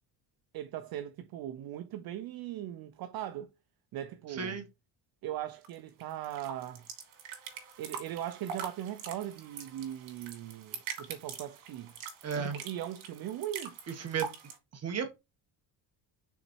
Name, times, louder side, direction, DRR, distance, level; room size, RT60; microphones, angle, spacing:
voice 1, 0.5-3.5 3.9-4.6 5.2-6.9 7.8-11.9 12.4-13.8, right 12 dB, 50° right, 0.6 m, -39 dB
voice 2, 4.3-4.7 12.2-12.6 13.9-14.3 14.7-15.2, right 6 dB, 35° right, 1.3 m, -34 dB
sound 1, 5.6-14.6, right 7 dB, 80° right, 2.6 m, -44 dB
5.9 x 4.0 x 4.5 m
cardioid pair, 150°, 46 cm